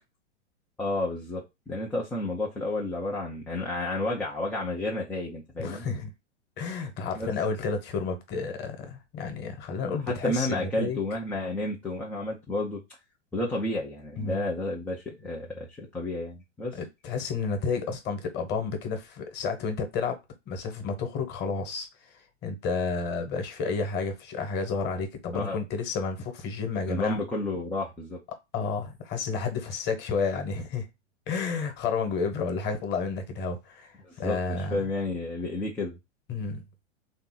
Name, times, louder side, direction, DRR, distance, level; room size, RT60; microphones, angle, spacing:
voice 1, 0.8-5.9 7.1-7.3 9.9-12.8 13.3-16.7 25.4-25.6 26.9-28.2 34.0-34.4 34.7-36.0, left 2 dB, 5° left, 0.3 m, -31 dB
voice 2, 5.6-6.1 6.6-11.0 14.2-14.4 16.7-20.2 20.5-27.2 28.5-30.9 31.3-34.9 36.3-36.6, left 4 dB, 30° left, 1.1 m, -31 dB
3.6 x 2.8 x 3.7 m
figure-of-eight pair, 105°, 36 cm